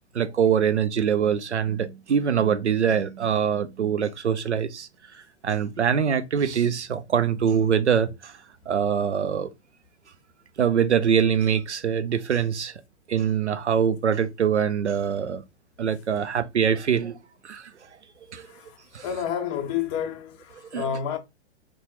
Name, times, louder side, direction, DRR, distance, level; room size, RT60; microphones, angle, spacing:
voice 1, 0.1-4.9 5.4-8.3 8.7-9.5 10.6-12.7 13.1-15.4 15.8-17.2 17.4-17.7 18.3-18.5 18.9-19.0 20.7-20.8, right 7 dB, 85° right, 0.5 m, -23 dB
voice 2, 18.5-21.2, left 8 dB, 30° left, 0.5 m, -30 dB
4.1 x 2.2 x 3.0 m
figure-of-eight pair, 110°, 34 cm